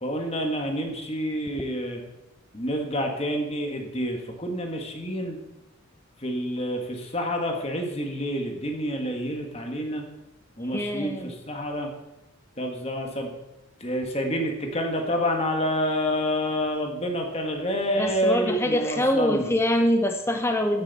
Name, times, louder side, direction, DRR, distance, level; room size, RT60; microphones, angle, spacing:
voice 1, 0.0-2.0 2.5-5.4 6.2-10.0 10.6-11.9 12.6-13.3 13.8-19.5, equal, 30° left, 3 dB, 1.6 m, -28 dB
voice 2, 10.7-11.3 18.0-20.8, left 1 dB, 10° left, 6 dB, 0.6 m, -24 dB
14.0 x 9.8 x 4.2 m, 0.97 s
head